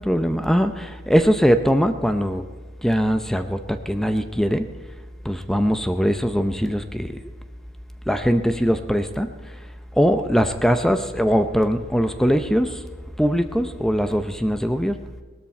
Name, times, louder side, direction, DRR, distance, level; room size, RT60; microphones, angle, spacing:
voice 1, 0.0-2.4 2.8-4.7 5.2-7.2 8.1-9.3 10.0-12.8 13.2-15.0, equal, ahead, 8 dB, 0.6 m, -21 dB
18.5 x 13.0 x 4.3 m, 1.5 s
head